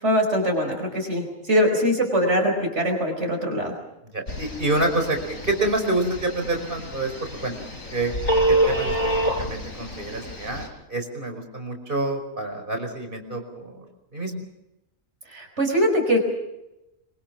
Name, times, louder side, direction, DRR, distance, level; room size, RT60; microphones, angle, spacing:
voice 1, 0.0-3.7 15.3-16.2, equal, 55° right, 2 dB, 5.0 m, -22 dB
voice 2, 4.1-7.1 7.4-7.6 7.9-8.1 8.5-9.0 9.4-13.8 14.1-14.3, right 2 dB, 40° right, 5 dB, 5.4 m, -27 dB
Telephone, 4.3-10.7, right 1 dB, 85° left, 4.8 m, -27 dB
25.5 x 25.0 x 6.1 m, 0.91 s
omnidirectional pair, 1.4 m